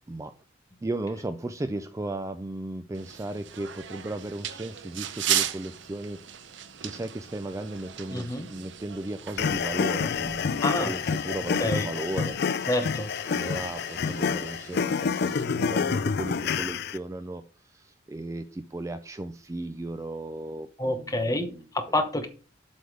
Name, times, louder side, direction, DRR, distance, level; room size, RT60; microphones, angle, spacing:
voice 1, 0.8-6.5 6.8-12.4 13.2-21.6, right 2 dB, 15° right, 10 dB, 0.3 m, -36 dB
sound 1, 2.9-15.4, right 10 dB, 70° right, 0.7 m, -37 dB
voice 2, 8.1-8.5 10.6-10.9 11.6-11.9 12.7-13.1 20.8-22.3, left 1 dB, 20° left, 7 dB, 0.9 m, -28 dB
sound 2, 9.4-17.0, left 6 dB, 55° left, 0.4 m, -28 dB
7.7 x 3.5 x 6.4 m, 0.37 s
head